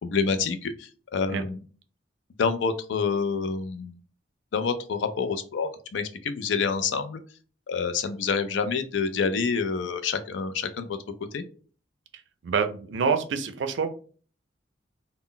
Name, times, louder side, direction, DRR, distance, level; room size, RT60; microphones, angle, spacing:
voice 1, 0.0-1.6 2.4-3.9 4.5-7.2 7.7-11.0 11.3-11.4, left 5 dB, 80° left, 9 dB, 0.4 m, -27 dB
voice 2, 12.4-13.9, right 5 dB, 75° right, 9 dB, 0.4 m, -26 dB
2.1 x 2.0 x 3.7 m, 0.40 s
head